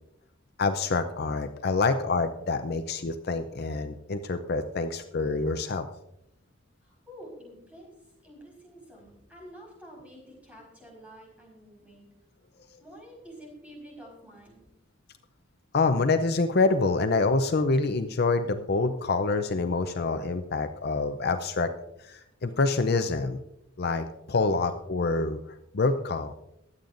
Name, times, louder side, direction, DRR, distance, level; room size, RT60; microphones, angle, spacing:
voice 1, 0.6-5.9 15.7-21.7 22.0-23.4 23.8-25.4 25.7-26.3, left 3 dB, 50° left, 8 dB, 0.6 m, -26 dB
voice 2, 6.8-12.1 12.5-14.6, equal, 5° right, -2 dB, 4.8 m, -49 dB
22.5 x 8.7 x 2.6 m, 0.86 s
head